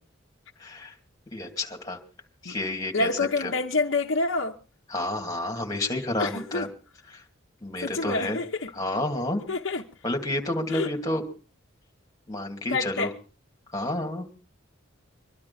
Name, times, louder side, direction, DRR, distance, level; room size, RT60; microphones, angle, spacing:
voice 1, 0.6-0.9 1.3-2.0 2.4-3.1 3.4-3.5 4.9-6.7 7.1-7.2 7.6-8.4 8.8-9.5 10.0-11.2 12.3-13.1 13.7-14.3, left 1 dB, 20° left, 2.6 m, -30 dB
voice 2, 2.9-4.6 6.2-6.7 7.8-8.7 9.5-9.8 10.7-10.9 12.7-13.1, left 3 dB, 65° left, 1.0 m, -27 dB
23.5 x 12.0 x 4.2 m
head